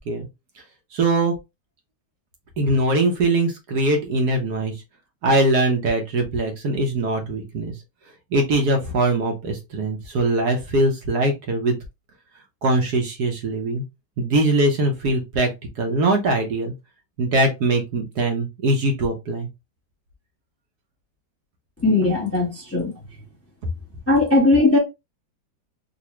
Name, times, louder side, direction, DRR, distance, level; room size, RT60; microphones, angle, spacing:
voice 1, 0.9-1.3 2.6-4.7 5.2-7.7 8.3-11.8 12.6-13.8 14.2-15.5 15.8-16.7 17.2-19.5, right 2 dB, 65° right, 1.3 m, -21 dB
voice 2, 21.8-22.9 24.1-24.8, left 2 dB, 10° left, 0.9 m, -18 dB
3.8 x 2.6 x 3.0 m
omnidirectional pair, 2.0 m